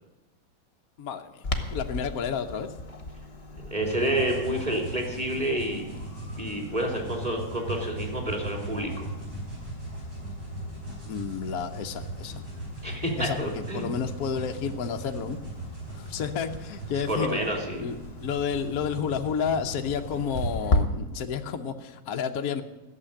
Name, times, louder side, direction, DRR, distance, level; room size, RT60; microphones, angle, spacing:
voice 1, 1.0-1.4 1.7-2.7 11.0-12.4 13.2-15.4 15.9-17.4 17.8-22.6, left 7 dB, 55° left, 5 dB, 1.2 m, -31 dB
Clock, 1.4-20.8, left 2 dB, 35° left, 1.4 m, -38 dB
voice 2, 3.6-5.8 6.4-9.1 12.8-13.9 17.1-17.9, right 1 dB, 20° right, 1 dB, 3.1 m, -29 dB
sound 1, 3.8-20.5, right 2 dB, 70° right, 5.9 m, -39 dB
15.0 x 7.5 x 10.0 m, 1.1 s
omnidirectional pair, 2.1 m